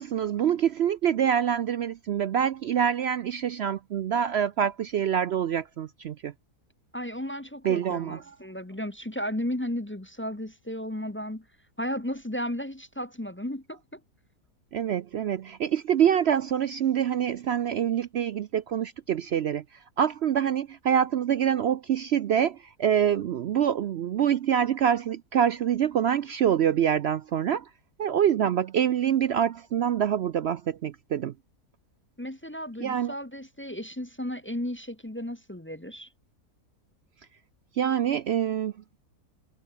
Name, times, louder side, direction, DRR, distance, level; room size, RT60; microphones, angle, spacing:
voice 1, 0.0-6.3 7.6-8.2 14.7-19.6 20.0-27.7 28.0-31.3 32.8-33.1 37.8-38.7, right 9 dB, 65° right, 0.6 m, -25 dB
voice 2, 6.9-11.4 11.8-14.0 32.2-36.1, equal, 10° left, 0.6 m, -34 dB
omnidirectional pair, 1.6 m